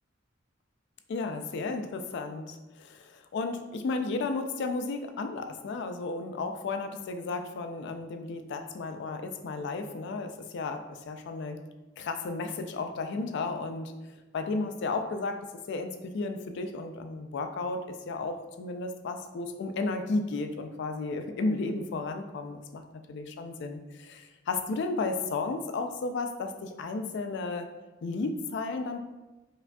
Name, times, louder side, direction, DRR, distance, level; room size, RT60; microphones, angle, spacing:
voice 1, 1.1-11.6 12.0-13.9 14.3-27.7 28.0-29.0, left 3 dB, 60° left, 7 dB, 0.3 m, -33 dB
4.8 x 2.5 x 2.2 m, 1.1 s
head